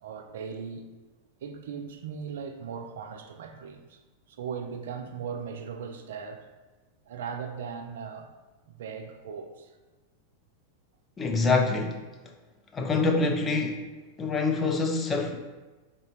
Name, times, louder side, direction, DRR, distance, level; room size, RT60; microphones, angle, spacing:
voice 1, 0.0-0.9 1.4-4.0 4.3-6.5 7.1-8.3 8.7-9.7, right 6 dB, 60° right, 6 dB, 0.3 m, -38 dB
voice 2, 11.2-12.0 12.7-13.8 14.2-15.4, left 3 dB, 20° left, 3 dB, 0.4 m, -25 dB
3.8 x 2.2 x 3.1 m, 1.2 s
figure-of-eight pair, 90°, 0 cm